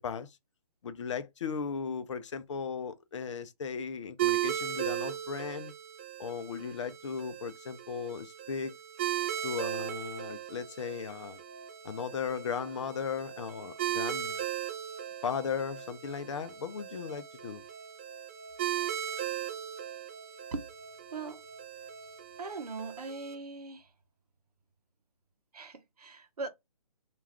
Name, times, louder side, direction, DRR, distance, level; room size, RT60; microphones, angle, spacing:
voice 1, 0.0-0.4 0.8-5.7 6.2-8.8 9.4-11.4 11.8-14.4 15.2-17.6, left 6 dB, 50° left, 0.5 m, -36 dB
sound 1, 4.2-23.3, right 12 dB, 20° right, 0.4 m, -37 dB
sound 2, 8.9-23.3, right 2 dB, 20° left, 1.0 m, -53 dB
voice 2, 22.4-23.9 25.5-26.5, right 3 dB, 80° right, 0.7 m, -40 dB
2.4 x 2.3 x 3.3 m
hypercardioid pair, 150°, 20 cm